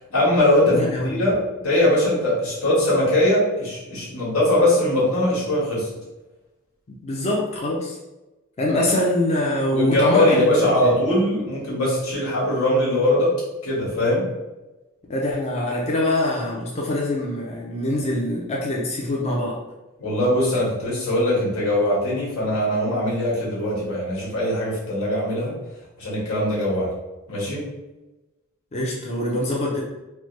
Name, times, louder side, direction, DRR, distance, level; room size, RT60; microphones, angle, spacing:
voice 1, 0.1-5.9 9.7-13.3 13.6-14.3 20.0-25.5 26.0-26.9 27.3-27.7, left 1 dB, 90° left, -6 dB, 1.4 m, -21 dB
voice 2, 0.7-1.2 6.9-8.0 8.6-11.0 15.1-19.6 28.7-29.8, left 1 dB, 30° left, -3 dB, 0.5 m, -24 dB
3.2 x 2.1 x 3.1 m, 1.1 s
head